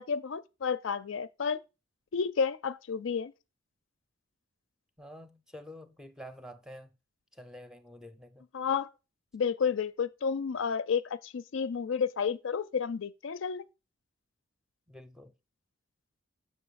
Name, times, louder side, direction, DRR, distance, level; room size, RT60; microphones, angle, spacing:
voice 1, 0.0-1.6 2.1-3.3 8.5-8.9 9.3-13.6, left 6 dB, 75° left, 0.5 m, -31 dB
voice 2, 5.0-6.9 7.3-8.4 14.9-15.3, equal, 5° right, 0.5 m, -48 dB
7.4 x 6.4 x 4.0 m
head